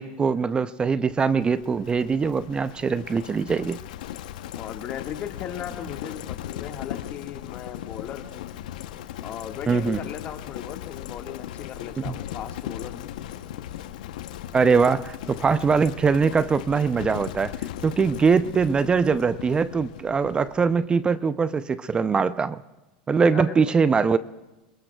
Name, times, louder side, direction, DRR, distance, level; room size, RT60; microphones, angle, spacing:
voice 1, 0.0-3.8 9.7-10.0 12.0-12.1 14.5-17.6 17.8-22.6 23.1-24.2, right 5 dB, 20° right, 15 dB, 0.5 m, -22 dB
Livestock farm animals working animals, 1.2-20.8, left 12 dB, 75° left, 0.8 m, -38 dB
voice 2, 4.5-8.5 9.2-13.1 23.3-23.7, left 10 dB, 40° left, 5 dB, 1.7 m, -37 dB
27.0 x 22.0 x 2.3 m, 1.0 s
hypercardioid pair, 95°, 4 cm